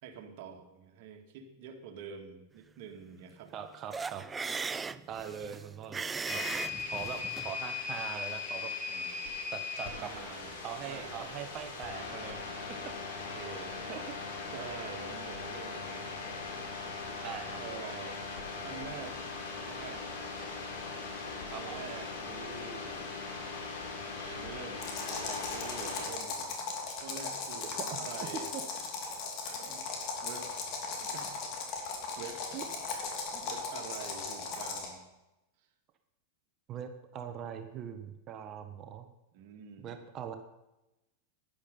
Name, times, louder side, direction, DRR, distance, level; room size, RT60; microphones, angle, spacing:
voice 1, 0.0-3.5 4.8-5.3 8.9-9.1 9.8-11.3 13.1-13.9 14.5-16.2 17.2-18.2 18.6-19.2 19.6-20.3 21.5-23.1 24.2-26.6 27.0-28.5 29.4-29.9 30.2-30.6 30.9-31.4 32.2-32.5 33.4-35.0 39.3-40.0, right 6 dB, 60° right, 4 dB, 2.1 m, -47 dB
voice 2, 3.5-4.2 5.1-6.4 6.9-8.7 9.5-10.1 10.6-12.4 12.7-12.8 13.3-13.4 13.9-14.1 17.2-17.6 21.5-21.8 27.8-28.0 28.5-28.6 32.5-32.6 33.3-33.4 36.7-39.1 39.8-40.3, right 8 dB, 40° right, 7 dB, 1.2 m, -41 dB
sound 1, 3.9-7.5, right 4 dB, 15° right, 0.4 m, -38 dB
sound 2, 6.3-26.1, left 4 dB, 70° left, 3.6 m, -39 dB
sound 3, 24.8-35.0, left 4 dB, 50° left, 3.1 m, -37 dB
11.5 x 10.5 x 5.5 m, 0.96 s
hypercardioid pair, 110°, 0 cm